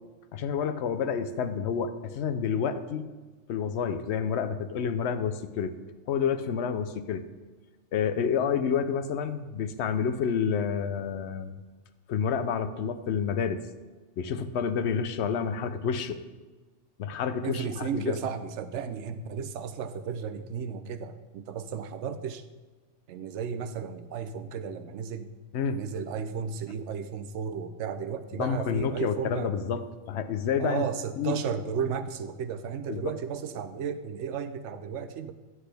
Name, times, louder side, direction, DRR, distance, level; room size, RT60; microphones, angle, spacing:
voice 1, 0.3-3.1 3.5-5.8 6.1-7.2 7.9-11.6 12.1-13.6 14.2-16.2 17.0-18.2 25.5-25.8 28.3-30.8 31.2-31.4 32.9-33.1, left 7 dB, 70° left, 11 dB, 0.8 m, -29 dB
voice 2, 17.4-22.4 23.1-25.3 25.7-29.5 30.6-35.3, right 7 dB, 75° right, 10 dB, 0.9 m, -34 dB
11.0 x 7.8 x 3.4 m, 1.3 s
omnidirectional pair, 1.2 m